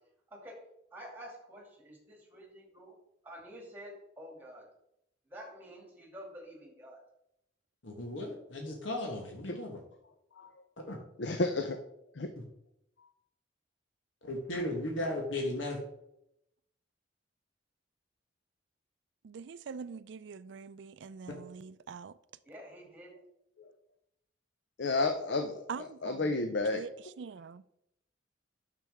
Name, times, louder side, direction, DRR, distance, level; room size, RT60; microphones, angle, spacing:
voice 1, 0.3-0.6 0.9-3.0 3.2-4.7 5.3-7.0 22.4-23.1, equal, 10° right, 2.4 m, -49 dB
voice 2, 7.8-9.8 10.8-11.0 12.4-12.5 14.2-15.8, left 1 dB, 85° left, 1.3 m, -36 dB
voice 3, 11.2-11.8 12.2-12.3 23.6-23.7 24.8-26.8, left 3 dB, 65° left, 0.6 m, -31 dB
voice 4, 19.2-22.2 25.7-26.4 26.7-27.6, right 6 dB, 70° right, 0.4 m, -44 dB
9.1 x 6.7 x 3.5 m
head